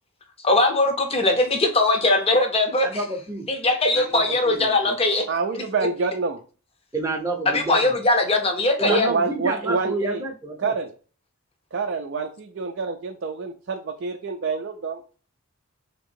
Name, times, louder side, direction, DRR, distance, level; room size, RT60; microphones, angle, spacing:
voice 1, 0.4-2.9 3.5-5.3 5.5-5.6 7.5-9.1, left 2 dB, 25° left, 5 dB, 0.7 m, -20 dB
voice 2, 2.8-3.5 3.9-4.9 6.9-8.0 8.8-10.7, right 2 dB, 15° right, 2 dB, 0.7 m, -29 dB
voice 3, 5.3-6.4 8.8-10.2 10.6-10.9 11.7-15.0, right 4 dB, 55° right, 3 dB, 0.4 m, -27 dB
3.6 x 2.9 x 4.4 m, 0.38 s
head